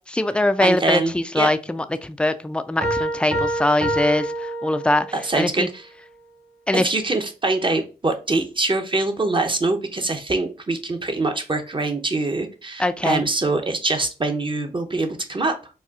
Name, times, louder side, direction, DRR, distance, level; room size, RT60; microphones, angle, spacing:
voice 1, 0.1-5.1 5.4-5.7 6.7-6.9 12.8-13.2, left 1 dB, 5° left, 0.4 m, -22 dB
voice 2, 0.6-1.5 5.1-5.8 6.7-15.6, right 2 dB, 30° right, 0.8 m, -24 dB
sound 1, 2.8-5.3, right 1 dB, 50° right, 1.5 m, -26 dB
4.2 x 2.3 x 2.4 m
supercardioid pair, 40°, 16 cm